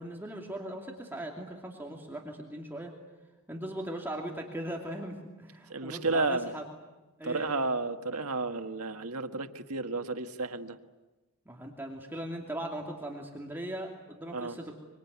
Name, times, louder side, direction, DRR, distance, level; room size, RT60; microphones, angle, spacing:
voice 1, 0.0-2.9 3.5-6.6 7.2-7.6 11.5-14.7, right 1 dB, 10° right, 0 dB, 2.7 m, -39 dB
voice 2, 5.7-6.5 7.2-10.8 14.3-14.6, right 3 dB, 85° right, 7 dB, 1.7 m, -32 dB
25.5 x 24.5 x 9.5 m, 1.2 s
head